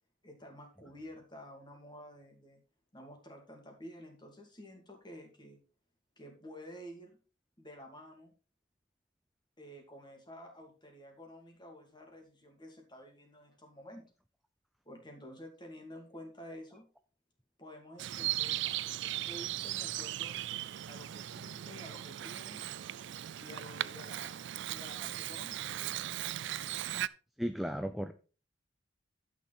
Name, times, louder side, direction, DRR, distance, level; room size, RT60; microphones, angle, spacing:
voice 1, 0.2-2.6 2.9-5.6 6.2-7.2 7.6-8.3 9.6-14.1 14.8-16.9 17.6-18.6 19.0-20.3 20.9-22.6 23.4-24.4 24.7-25.7, equal, 25° left, 3 dB, 2.6 m, -50 dB
Bird vocalization bird call bird song, 18.0-27.1, right 13 dB, 65° right, 0.4 m, -38 dB
voice 2, 27.4-28.1, equal, ahead, 7 dB, 0.5 m, -34 dB
11.5 x 6.5 x 4.1 m, 0.35 s
head